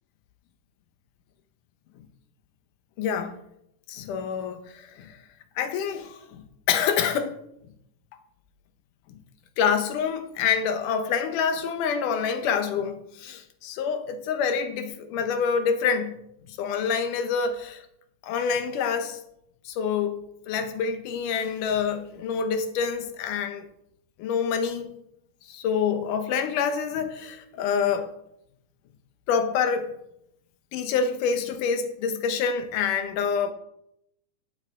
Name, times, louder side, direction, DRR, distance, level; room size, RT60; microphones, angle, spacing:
voice 1, 3.0-3.4 3.9-5.2 5.6-7.3 9.1-9.2 9.6-16.2 16.5-17.8 18.2-19.2 19.7-23.7 24.2-25.0 25.5-28.1 29.3-29.9 30.7-33.5, left 6 dB, 75° left, 2.4 m, -27 dB
12.5 x 8.1 x 3.7 m
omnidirectional pair, 3.7 m